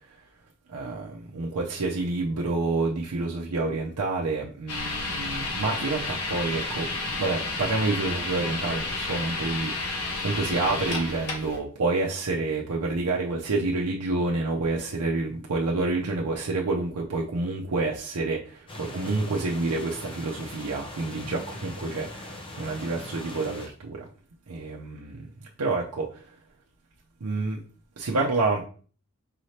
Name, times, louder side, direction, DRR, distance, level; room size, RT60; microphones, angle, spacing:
voice 1, 0.7-6.9 7.2-24.1 24.5-25.3 25.6-26.4 27.2-27.6 28.0-28.6, right 3 dB, 85° right, 0.6 m, -28 dB
sound 1, 4.7-11.6, left 3 dB, 75° left, 1.1 m, -31 dB
sound 2, 18.7-23.7, left 1 dB, 25° left, 0.8 m, -41 dB
4.7 x 3.2 x 2.8 m
head